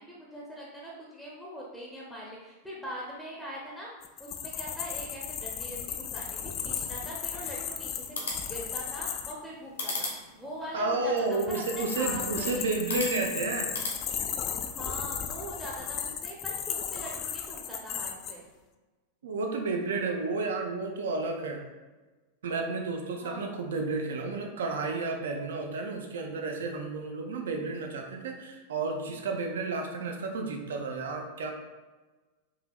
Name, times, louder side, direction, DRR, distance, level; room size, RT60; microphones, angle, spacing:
voice 1, 0.0-11.1 11.5-12.8 14.7-18.5 23.2-23.5, equal, ahead, -5 dB, 0.6 m, -42 dB
sound 1, 4.0-9.3 11.2-18.3, left 8 dB, 35° left, 0.3 m, -35 dB
sound 2, 8.0-14.0, left 2 dB, 70° left, 1.0 m, -40 dB
voice 2, 10.7-13.7 19.2-21.6 22.4-31.5, right 3 dB, 60° right, 3 dB, 0.5 m, -31 dB
4.9 x 2.7 x 2.3 m, 1.2 s
figure-of-eight pair, 90°, 0 cm